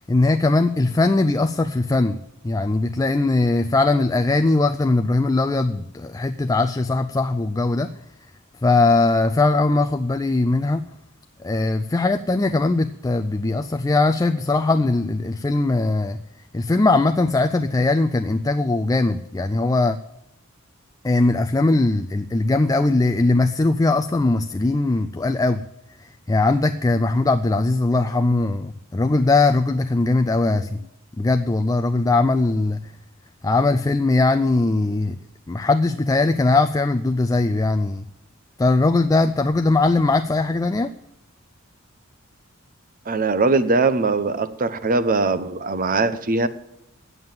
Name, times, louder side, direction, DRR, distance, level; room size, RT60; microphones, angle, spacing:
voice 1, 0.1-8.0 8.6-10.9 11.4-16.2 16.5-20.0 21.0-25.7 26.0-30.8 31.2-32.9 33.4-35.2 35.5-38.1 38.6-40.9, left 2 dB, 15° left, 8 dB, 0.3 m, -20 dB
voice 2, 43.1-46.5, right 3 dB, 40° right, 13 dB, 0.7 m, -21 dB
9.4 x 7.7 x 8.9 m, 0.84 s
head